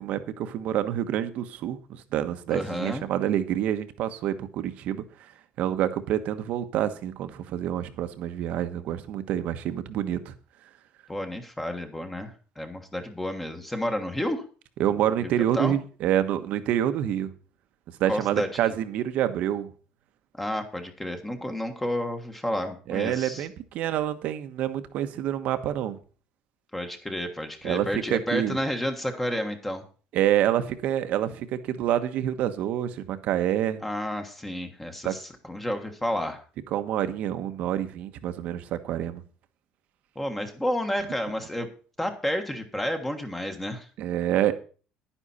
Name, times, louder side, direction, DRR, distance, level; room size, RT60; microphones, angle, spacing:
voice 1, 0.0-5.3 5.6-10.3 14.8-17.3 18.0-19.7 22.9-26.0 27.6-28.6 30.1-33.8 35.0-35.1 36.7-39.2 44.0-44.5, right 11 dB, 55° right, 10 dB, 1.2 m, -27 dB
voice 2, 2.5-3.0 11.1-14.4 15.2-15.8 18.1-18.5 20.4-23.5 26.7-29.8 33.8-35.2 35.5-36.4 40.1-41.7 42.0-43.9, left 1 dB, 5° left, 5 dB, 1.4 m, -31 dB
11.0 x 10.0 x 4.3 m, 0.38 s
cardioid pair, 165°, 3 cm